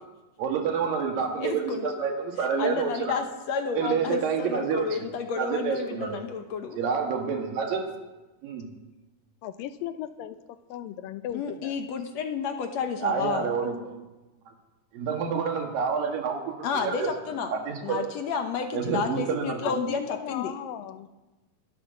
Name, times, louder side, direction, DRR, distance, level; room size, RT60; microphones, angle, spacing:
voice 1, 0.4-3.2 3.7-5.1 5.4-6.2 6.8-7.9 8.4-8.7 13.0-13.9 14.5-14.6 14.9-17.1 17.5-18.1 18.7-19.6, right 6 dB, 85° right, 3 dB, 3.6 m, -28 dB
voice 2, 1.4-2.0 2.6-6.8 11.3-13.5 16.6-17.5 17.8-20.5, left 6 dB, 65° left, 6 dB, 1.9 m, -31 dB
voice 3, 3.8-4.5 9.4-10.4 10.7-11.7 13.6-13.7 18.8-19.0 19.6-21.1, left 11 dB, 90° left, 11 dB, 2.6 m, -36 dB
23.5 x 8.7 x 6.8 m, 1.1 s
omnidirectional pair, 3.9 m